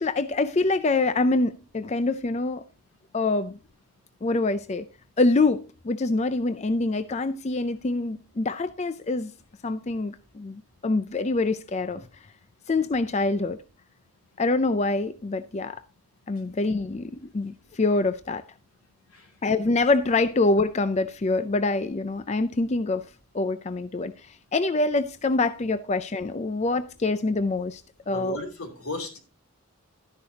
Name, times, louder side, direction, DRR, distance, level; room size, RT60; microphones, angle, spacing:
voice 1, 0.0-2.6 3.1-3.6 4.2-4.9 5.2-9.3 9.6-12.1 12.7-13.6 14.4-15.8 16.3-18.4 19.4-23.1 23.3-28.4, left 3 dB, 30° left, 0.4 m, -25 dB
voice 2, 28.1-29.2, left 1 dB, 80° left, 2.9 m, -35 dB
12.5 x 10.5 x 2.8 m
head